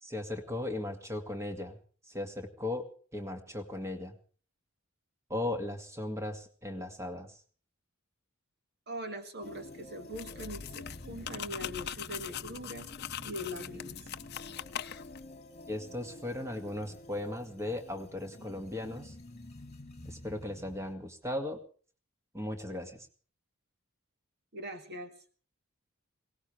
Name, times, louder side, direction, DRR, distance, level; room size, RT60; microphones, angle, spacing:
voice 1, 0.0-1.8 2.1-2.9 3.1-4.1 5.3-7.3 15.7-19.1 20.1-21.6 22.3-23.1, left 1 dB, 15° right, 6 dB, 2.2 m, -37 dB
voice 2, 8.9-12.9 13.2-14.1 24.5-25.1, equal, 50° right, 7 dB, 1.9 m, -41 dB
sound 1, 9.4-20.9, left 1 dB, 30° left, 2.0 m, -49 dB
sound 2, 10.1-15.2, left 9 dB, 50° left, 0.7 m, -41 dB
22.5 x 19.0 x 3.4 m, 0.41 s
head